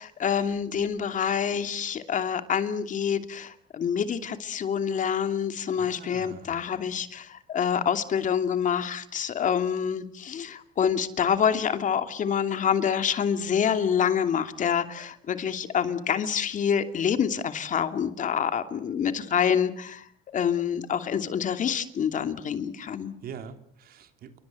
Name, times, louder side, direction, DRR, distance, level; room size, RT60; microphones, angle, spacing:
voice 1, 0.0-20.0 20.3-23.1, left 8 dB, 50° left, 9 dB, 2.8 m, -27 dB
voice 2, 5.8-6.6 23.2-24.4, right 7 dB, 65° right, 8 dB, 3.3 m, -43 dB
28.5 x 24.0 x 7.8 m, 0.64 s
cardioid pair, 110°, 17 cm